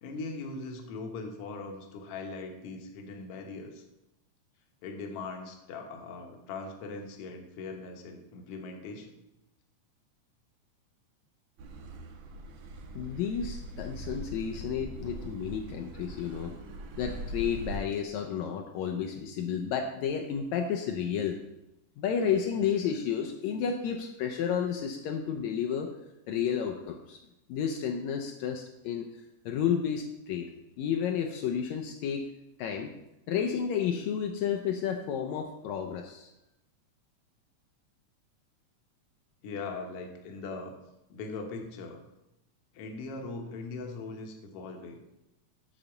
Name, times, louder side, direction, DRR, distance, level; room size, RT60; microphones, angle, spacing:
voice 1, 0.0-3.8 4.8-9.1 39.4-40.7 41.1-42.0 42.7-45.0, left 3 dB, 60° left, 3 dB, 1.9 m, -40 dB
Car passing by / Accelerating revving vroom, 11.6-17.8, right 1 dB, 70° right, 2.0 m, -41 dB
voice 2, 13.0-16.5 17.0-21.4 22.0-25.9 26.3-27.2 27.5-29.1 29.5-30.5 30.8-32.3 32.6-32.9 33.3-36.3, left 8 dB, 80° left, 3 dB, 1.9 m, -31 dB
8.6 x 4.1 x 7.0 m, 0.92 s
omnidirectional pair, 3.3 m